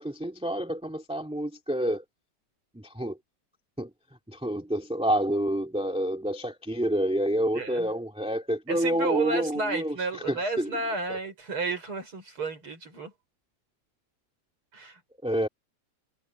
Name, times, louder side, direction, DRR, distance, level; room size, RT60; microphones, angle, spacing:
voice 1, 0.0-2.0 2.7-3.2 3.8-3.9 4.3-10.7 11.1-11.2 15.2-15.5, right 1 dB, ahead, 2.3 m, -28 dB
voice 2, 7.5-7.9 8.7-13.1 14.7-15.0, right 3 dB, 45° right, 6.3 m, -31 dB
omnidirectional pair, 3.3 m